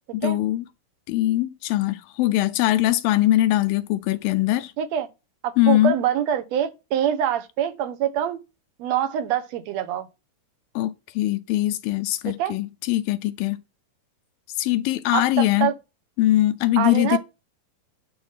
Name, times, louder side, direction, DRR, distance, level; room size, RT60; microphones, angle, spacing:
voice 1, 0.1-0.7 1.1-4.7 5.6-6.0 10.8-13.6 14.6-15.7 16.2-17.2, left 15 dB, 85° left, 2.4 m, -22 dB
voice 2, 5.4-8.4 8.8-10.1 12.4-12.6 15.1-15.7 16.8-17.2, right 9 dB, 65° right, 1.8 m, -25 dB
10.5 x 4.0 x 5.7 m
omnidirectional pair, 4.0 m